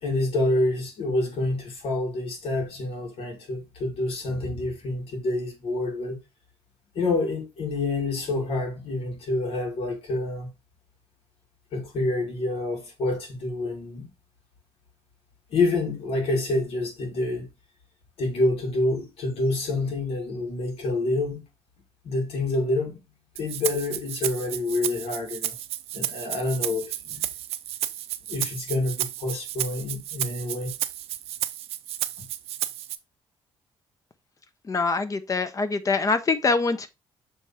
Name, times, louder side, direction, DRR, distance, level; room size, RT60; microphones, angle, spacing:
voice 1, 0.0-6.2 6.9-10.5 11.7-14.1 15.5-17.5 18.2-21.4 22.0-23.0 23.4-25.5 25.9-27.2 28.3-30.7, left 2 dB, 70° left, 2.6 m, -27 dB
Rattle (instrument), 23.4-33.0, right 13 dB, 90° right, 0.5 m, -32 dB
voice 2, 34.7-36.9, left 4 dB, 35° left, 0.9 m, -24 dB
6.8 x 3.4 x 4.4 m
cardioid pair, 100°, 10 cm